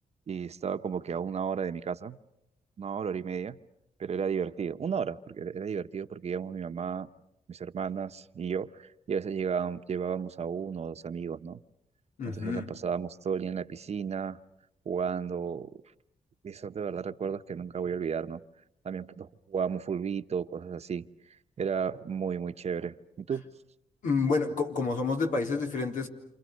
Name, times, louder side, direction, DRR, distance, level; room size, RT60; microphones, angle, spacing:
voice 1, 0.3-2.2 2.8-3.6 4.0-7.1 7.5-11.6 12.2-14.4 14.8-15.7 16.4-18.4 18.8-21.1 21.6-23.4, right 6 dB, 55° right, 10 dB, 1.0 m, -33 dB
voice 2, 12.2-12.7 24.0-26.1, left 4 dB, 80° left, 3 dB, 3.8 m, -29 dB
28.5 x 28.0 x 6.6 m, 0.82 s
cardioid pair, 85°, 13 cm